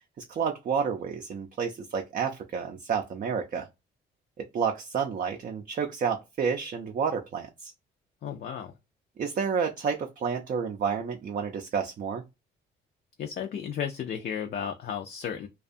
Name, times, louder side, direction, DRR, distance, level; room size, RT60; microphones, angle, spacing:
voice 1, 0.3-3.7 4.4-7.7 9.2-12.2, right 6 dB, 45° right, 0.4 m, -30 dB
voice 2, 8.2-8.7 13.2-15.5, left 8 dB, 50° left, 0.4 m, -34 dB
2.5 x 2.3 x 2.5 m
cardioid pair, 90°, 20 cm